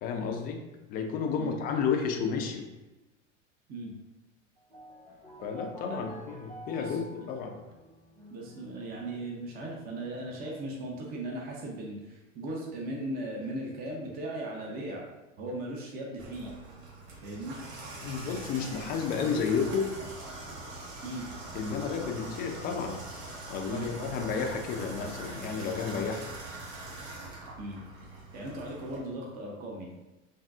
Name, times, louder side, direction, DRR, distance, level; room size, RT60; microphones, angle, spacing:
voice 1, 0.0-0.6 0.9-2.7 5.4-7.5 18.0-20.0 21.5-23.0 23.5-26.3, left 6 dB, 25° left, 4 dB, 0.3 m, -31 dB
sound 1, 4.6-10.4, equal, 90° right, 1.5 m, -48 dB
voice 2, 8.3-15.0 15.4-16.5 17.2-17.6 21.0-21.2 23.7-23.9 27.6-27.8 28.3-29.9, right 1 dB, 25° right, -1 dB, 0.6 m, -38 dB
Water tap faucet / Bathtub (filling or washing), 16.2-29.0, right 2 dB, 45° right, 1.0 m, -43 dB
3.5 x 2.6 x 2.4 m, 1.1 s
figure-of-eight pair, 85°, 38 cm